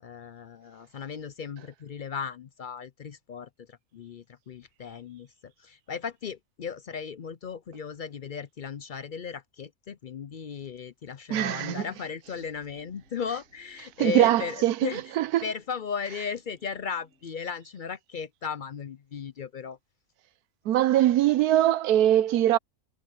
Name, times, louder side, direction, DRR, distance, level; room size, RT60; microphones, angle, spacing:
voice 1, 0.0-15.0 15.4-19.8, left 6 dB, 65° left, 0.5 m, -36 dB
voice 2, 11.3-11.9 14.0-15.4 20.7-22.6, right 13 dB, 90° right, 1.2 m, -22 dB
sound 1, 12.2-17.3, equal, 60° right, 8.5 m, -64 dB
omnidirectional pair, 1.6 m